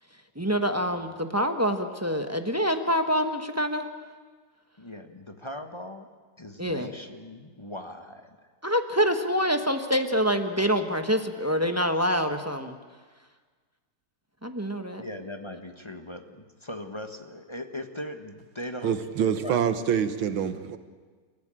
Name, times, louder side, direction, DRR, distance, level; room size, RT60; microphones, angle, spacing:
voice 1, 0.4-3.8 6.6-6.9 8.6-12.8 14.4-15.0, equal, 10° right, 6 dB, 0.8 m, -26 dB
voice 2, 4.8-6.1 6.4-8.5 15.0-19.0 19.4-19.6, left 1 dB, 15° left, 6 dB, 1.1 m, -39 dB
voice 3, 18.8-20.8, right 8 dB, 90° right, 10 dB, 2.1 m, -26 dB
29.0 x 15.0 x 8.9 m, 1.5 s
omnidirectional pair, 2.1 m